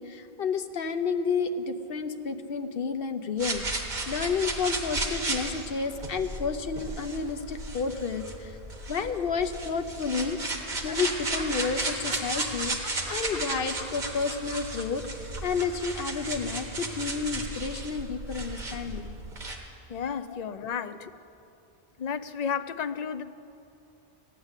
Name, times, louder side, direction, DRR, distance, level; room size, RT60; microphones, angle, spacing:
voice 1, 0.0-3.6 4.1-8.5 8.9-10.4 10.8-12.8 13.1-15.0 15.4-19.1, left 5 dB, 65° left, 1.0 m, -30 dB
sound 1, 3.4-19.6, right 2 dB, 50° right, 1.6 m, -34 dB
sound 2, 9.0-9.7 9.9-10.0 10.3-10.4 10.7-15.1 15.4-15.5, equal, 30° right, 1.9 m, -41 dB
voice 2, 19.9-21.1 22.0-23.2, left 7 dB, 50° left, 0.6 m, -32 dB
16.0 x 10.0 x 8.1 m
omnidirectional pair, 1.0 m